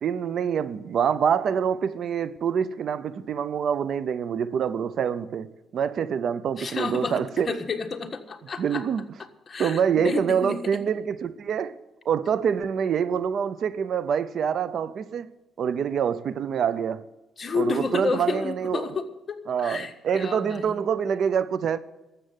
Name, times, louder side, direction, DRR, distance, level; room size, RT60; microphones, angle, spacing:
voice 1, 0.0-7.6 8.6-9.0 9.6-11.8 12.1-15.3 15.6-17.1 17.5-18.8 19.5-21.8, right 7 dB, 60° right, 0.6 m, -26 dB
voice 2, 6.6-8.8 9.5-10.8 17.4-20.8, left 4 dB, 35° left, 1.5 m, -31 dB
12.5 x 7.7 x 9.8 m
cardioid pair, 90°, 0 cm